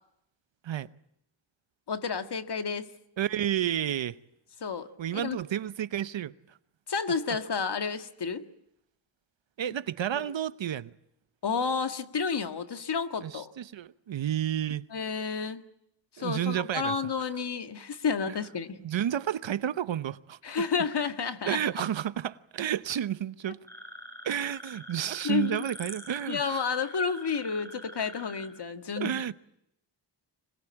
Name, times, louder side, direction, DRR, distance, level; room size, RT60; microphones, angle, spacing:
voice 1, 1.9-2.9 4.6-5.4 6.9-8.4 10.1-10.3 11.4-13.5 14.9-15.6 16.2-18.8 20.4-21.6 25.2-25.6 26.3-29.3, left 5 dB, 60° left, 1.8 m, -31 dB
voice 2, 3.2-4.2 5.0-6.3 9.6-10.9 13.2-14.9 16.2-17.0 18.3-18.4 18.8-20.4 21.5-23.6 24.2-26.6 29.0-29.3, right 10 dB, 75° right, 0.9 m, -31 dB
sound 1, 23.7-28.5, equal, 5° left, 7.0 m, -45 dB
26.0 x 21.0 x 8.9 m
wide cardioid pair, 110°, 45 cm